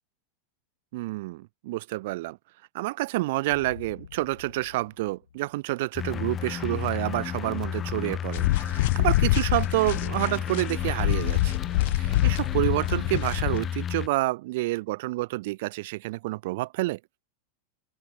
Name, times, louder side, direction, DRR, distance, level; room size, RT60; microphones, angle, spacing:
voice 1, 0.9-2.4 2.7-11.6 11.9-17.0, right 20 dB, 50° right, 0.5 m, -28 dB
sound 1, 3.5-6.1, left 8 dB, 70° left, 7.8 m, -48 dB
sound 2, 5.9-14.1, left 9 dB, 25° left, 0.8 m, -32 dB
sound 3, 8.3-13.6, left 18 dB, 50° left, 0.3 m, -26 dB
figure-of-eight pair, 90°, 0 cm